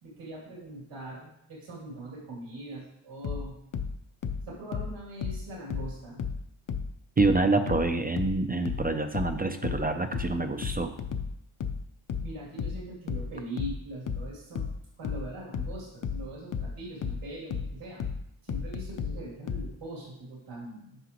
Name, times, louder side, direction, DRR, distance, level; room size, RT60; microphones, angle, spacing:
voice 1, 0.0-3.5 4.5-6.2 12.2-14.7 15.0-18.0 18.4-21.0, right 1 dB, 85° right, -5 dB, 2.7 m, -41 dB
sound 1, 3.2-6.4 6.7-19.7, left 6 dB, 40° left, 0.6 m, -33 dB
voice 2, 7.2-10.9, right 3 dB, 20° right, 7 dB, 0.3 m, -26 dB
9.8 x 5.9 x 2.9 m, 0.77 s
wide cardioid pair, 140°, 50 cm